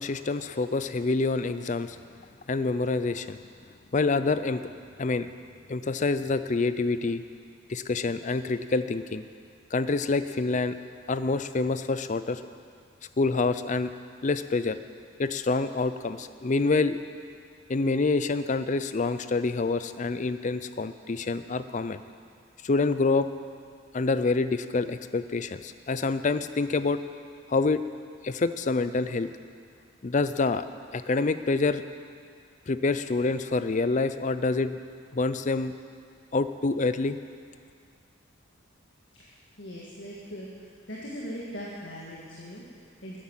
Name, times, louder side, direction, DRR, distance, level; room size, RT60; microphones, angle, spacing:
voice 1, 0.0-2.0 2.5-3.4 3.9-4.6 5.0-5.3 5.7-7.2 7.7-9.2 9.7-10.8 11.1-12.4 13.2-13.9 14.2-14.8 15.2-17.0 17.7-22.0 22.6-23.3 23.9-27.0 27.5-27.8 28.2-29.3 30.0-30.7 30.9-31.8 32.7-34.8 35.1-35.7 36.3-37.2, left 3 dB, 40° left, 12 dB, 0.5 m, -27 dB
voice 2, 39.1-43.2, equal, 60° left, -5 dB, 2.0 m, -41 dB
12.0 x 10.0 x 7.4 m, 2.2 s
head